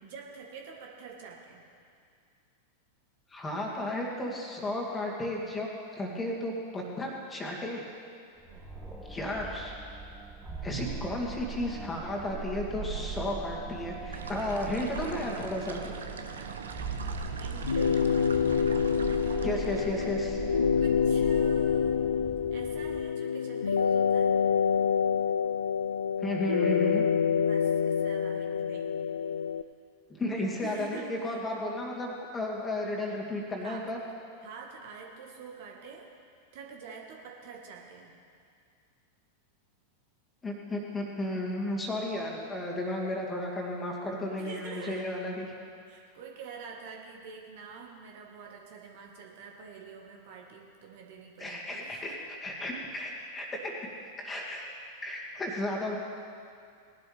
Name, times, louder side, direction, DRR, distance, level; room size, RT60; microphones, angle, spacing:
voice 1, 0.0-1.6 8.5-8.7 16.7-18.1 20.8-22.0 22.5-24.3 27.4-28.9 30.6-31.4 33.6-33.8 34.4-36.0 36.5-38.1 44.3-45.0 45.9-52.0 55.5-55.6, right 5 dB, 50° right, 0 dB, 1.7 m, -46 dB
voice 2, 3.3-7.8 9.1-9.7 10.6-16.0 19.4-20.4 26.2-27.1 30.2-34.0 40.4-45.5 51.4-53.7 54.2-54.6 55.0-56.0, left 1 dB, 15° left, -2 dB, 2.2 m, -33 dB
sound 1, 8.4-23.0, right 4 dB, 5° right, 1.3 m, -40 dB
sound 2, 14.1-20.2, right 5 dB, 70° right, 0.8 m, -41 dB
sound 3, 17.6-29.6, left 7 dB, 75° left, 0.3 m, -27 dB
19.0 x 11.5 x 3.5 m, 2.3 s
figure-of-eight pair, 90°, 0 cm